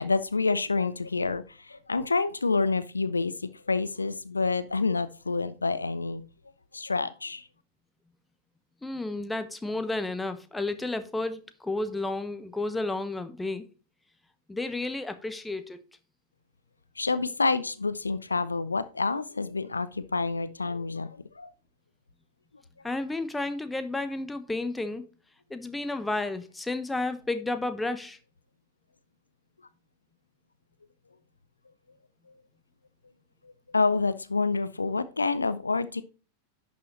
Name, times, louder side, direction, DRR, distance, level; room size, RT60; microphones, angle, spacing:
voice 1, 0.0-6.2 6.7-7.5 17.0-21.5 32.3-32.4 33.4-36.0, left 4 dB, 80° left, 0.5 m, -28 dB
voice 2, 8.8-13.7 14.5-15.8 22.8-25.0 25.5-28.2, left 2 dB, 10° left, 0.9 m, -32 dB
11.0 x 6.3 x 3.0 m
figure-of-eight pair, 90°, 0 cm